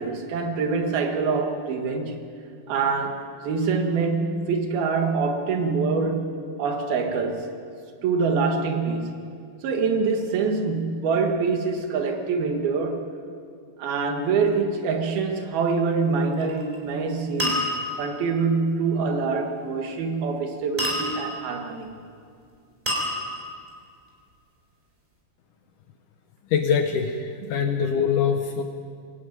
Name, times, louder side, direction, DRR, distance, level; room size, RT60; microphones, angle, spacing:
voice 1, 0.0-2.2 2.7-6.3 6.6-7.5 8.0-9.2 9.6-13.0 13.8-17.7 18.0-21.9, right 4 dB, 70° right, 4 dB, 3.4 m, -25 dB
sound 1, 16.3-16.8 17.4-18.1 20.8-21.5 22.9-23.7, equal, 10° right, 4.2 m, -28 dB
voice 2, 26.5-28.6, left 7 dB, 70° left, 5 dB, 2.1 m, -23 dB
23.5 x 13.5 x 9.3 m, 2.3 s
omnidirectional pair, 4.6 m